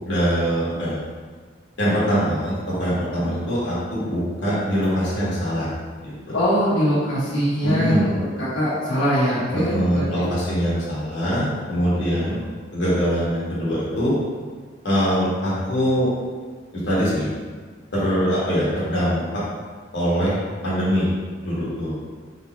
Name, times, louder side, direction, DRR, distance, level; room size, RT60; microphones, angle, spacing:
voice 1, 0.1-1.0 1.8-5.7 6.0-6.4 7.6-8.1 9.5-12.4 12.7-14.1 14.8-16.1 16.7-17.3 17.9-19.4 19.9-20.3 20.6-21.1 21.4-22.0, equal, 65° left, -8 dB, 1.5 m, -23 dB
voice 2, 6.3-8.0 8.4-10.3, equal, 85° left, -10 dB, 1.3 m, -22 dB
3.6 x 2.9 x 4.3 m, 1.5 s
head